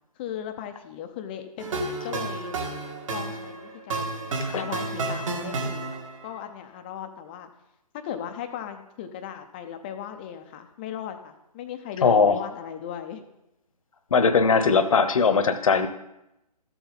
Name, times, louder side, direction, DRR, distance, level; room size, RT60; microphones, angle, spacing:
voice 1, 0.2-2.6 3.1-5.9 6.2-7.5 8.0-13.2, left 9 dB, 15° left, 7 dB, 0.5 m, -37 dB
sound 1, 1.6-6.3, right 3 dB, 50° right, 1.7 m, -31 dB
voice 2, 12.0-12.4 14.1-15.9, left 5 dB, 55° left, 11 dB, 0.9 m, -20 dB
13.5 x 7.2 x 3.9 m, 0.89 s
figure-of-eight pair, 145°, 21 cm